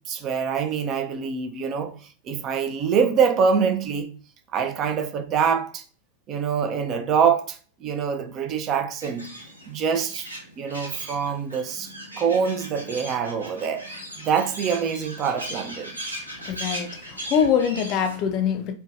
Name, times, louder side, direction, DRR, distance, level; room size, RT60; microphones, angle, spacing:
voice 1, 0.0-1.9 2.2-4.1 4.5-5.8 6.3-9.3 9.7-10.3 10.6-11.9 12.2-13.9 14.2-16.0, right 6 dB, 35° right, 0.4 m, -25 dB
sound 1, 9.0-18.2, equal, 85° right, 0.9 m, -38 dB
voice 2, 16.5-18.7, left 7 dB, 40° left, 0.4 m, -24 dB
4.4 x 2.2 x 2.5 m
figure-of-eight pair, 90°, 0 cm